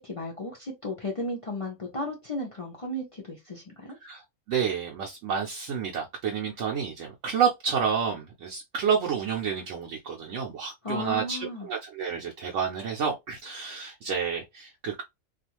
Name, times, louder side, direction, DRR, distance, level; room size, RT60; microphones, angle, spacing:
voice 1, 0.0-4.0 10.8-11.7, left 1 dB, 40° left, 0.5 m, -34 dB
voice 2, 4.5-15.0, right 7 dB, 75° right, 0.9 m, -29 dB
2.4 x 2.4 x 2.8 m
omnidirectional pair, 1.3 m